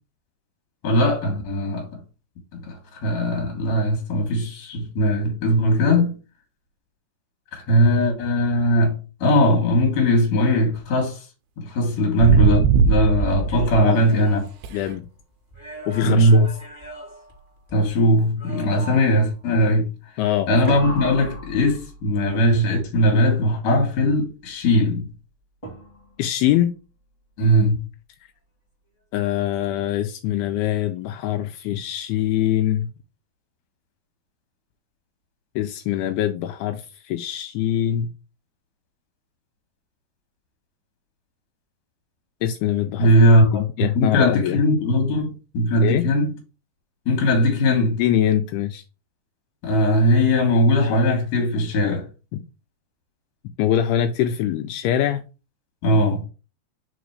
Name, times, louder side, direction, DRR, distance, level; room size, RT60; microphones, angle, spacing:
voice 1, 0.8-1.9 2.5-6.2 7.5-11.2 11.6-14.5 16.0-16.5 17.7-19.9 20.5-25.1 27.4-27.8 43.0-43.6 43.9-46.3 47.1-48.0 49.6-52.0 55.8-56.2, equal, 50° left, 2.7 m, -19 dB
sound 1, 12.2-13.8 14.6-14.8 20.6-20.7, right 6 dB, 85° right, 1.8 m, -19 dB
sound 2, 13.2-15.1 15.5-17.9 18.4-19.3 20.7-22.3 25.6-26.3, right 1 dB, 10° left, 2.3 m, -37 dB
voice 2, 14.7-15.0 15.9-16.5 20.2-20.5 26.2-26.7 29.1-32.9 35.6-38.1 42.4-43.1 43.5-44.6 45.8-46.1 48.0-48.8 53.6-55.2, left 11 dB, 85° left, 2.5 m, -23 dB
5.2 x 4.3 x 4.8 m
omnidirectional pair, 4.6 m